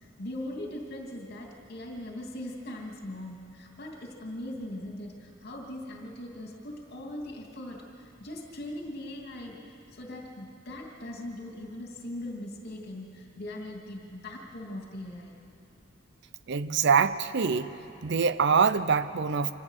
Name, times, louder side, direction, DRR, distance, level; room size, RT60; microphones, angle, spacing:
voice 1, 0.0-15.3, left 1 dB, 55° left, 0 dB, 2.8 m, -40 dB
voice 2, 16.5-17.7 18.0-19.5, right 5 dB, 60° right, 14 dB, 0.6 m, -24 dB
25.5 x 17.5 x 6.6 m, 2.8 s
head